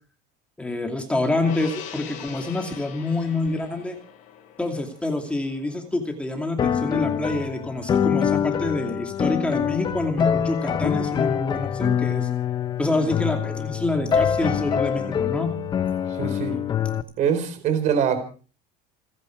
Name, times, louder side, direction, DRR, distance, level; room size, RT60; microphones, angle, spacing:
voice 1, 0.6-4.0 4.6-12.3 12.8-15.6, left 2 dB, 5° left, 3 dB, 2.6 m, -27 dB
Gong, 1.4-8.0 8.4-8.5, left 8 dB, 45° left, 5.1 m, -43 dB
sound 1, 6.6-17.0, left 8 dB, 25° left, 1.0 m, -25 dB
voice 2, 16.1-16.6 17.2-18.2, right 7 dB, 40° right, 10 dB, 4.1 m, -23 dB
29.5 x 10.5 x 4.7 m, 0.39 s
cardioid pair, 160°, 18 cm